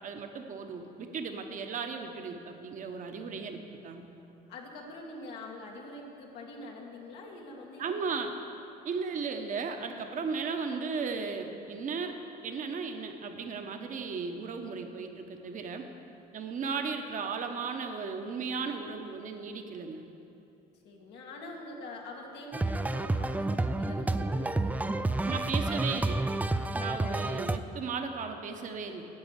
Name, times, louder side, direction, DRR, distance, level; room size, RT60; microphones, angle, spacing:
voice 1, 0.0-4.1 7.8-8.3 8.8-12.1 12.4-15.9 16.3-20.0 25.2-26.2 26.7-29.1, right 5 dB, 50° right, 5 dB, 1.1 m, -36 dB
voice 2, 4.5-8.2 20.8-25.4 26.5-27.3, left 2 dB, 90° left, -1 dB, 2.0 m, -45 dB
sound 1, 22.5-27.6, right 2 dB, 10° right, 0.4 m, -30 dB
9.8 x 7.8 x 8.2 m, 2.9 s
cardioid pair, 110°, 17 cm